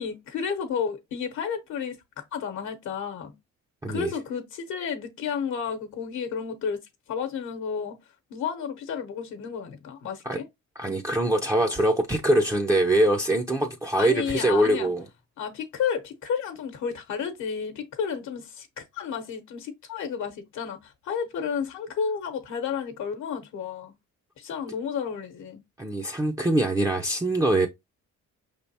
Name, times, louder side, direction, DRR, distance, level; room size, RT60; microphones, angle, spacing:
voice 1, 0.0-2.0 2.3-3.3 3.9-6.8 7.1-8.0 8.3-10.5 14.0-14.9 15.4-23.9 24.4-25.6, left 6 dB, 75° left, 0.9 m, -31 dB
voice 2, 3.8-4.1 10.2-10.4 10.8-15.1 25.8-27.7, right 1 dB, 10° right, 0.5 m, -23 dB
5.0 x 3.4 x 2.7 m
cardioid pair, 90°, 30 cm